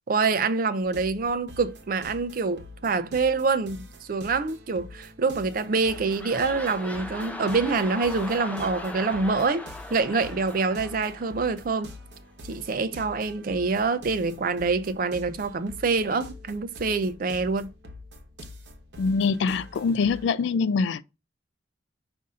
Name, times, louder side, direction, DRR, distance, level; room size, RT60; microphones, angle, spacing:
voice 1, 0.1-3.8 4.1-9.6 9.9-11.9 12.5-17.7, right 4 dB, 50° right, 0.4 m, -26 dB
sound 1, 0.8-20.3, left 1 dB, 65° right, 1.0 m, -45 dB
sound 2, 5.5-12.0 12.5-12.6, left 1 dB, 10° left, 0.5 m, -39 dB
voice 2, 19.0-21.0, left 5 dB, 75° left, 0.3 m, -24 dB
5.4 x 2.6 x 3.6 m
head